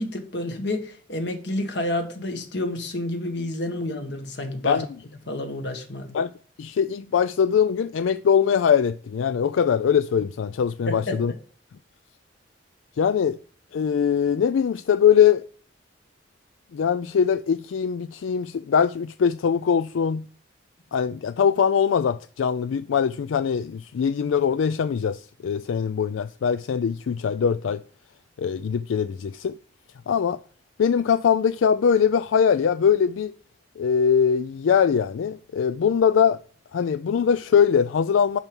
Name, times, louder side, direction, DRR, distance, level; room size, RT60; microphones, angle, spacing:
voice 1, 0.0-4.8 5.3-6.2 10.9-11.3, left 1 dB, 60° left, 1.6 m, -29 dB
voice 2, 6.6-11.3 13.0-13.4 13.7-15.4 16.7-20.3 20.9-27.8 28.4-29.6 30.1-30.4 30.8-33.3 33.8-36.4 36.7-38.4, left 7 dB, 85° left, 0.4 m, -22 dB
11.0 x 4.6 x 5.3 m
head